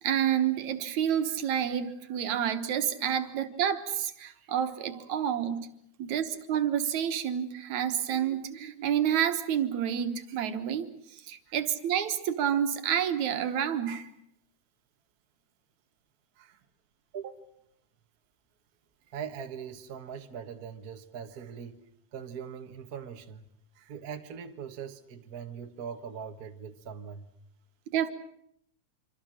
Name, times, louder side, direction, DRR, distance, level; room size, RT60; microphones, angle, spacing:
voice 1, 0.0-5.6 6.0-14.1 27.9-28.1, right 9 dB, 70° right, 8 dB, 2.6 m, -29 dB
voice 2, 17.1-17.4 19.1-21.8 22.1-23.5 23.7-27.3, right 7 dB, 40° right, 6 dB, 1.4 m, -41 dB
26.0 x 26.0 x 6.4 m, 0.73 s
omnidirectional pair, 3.4 m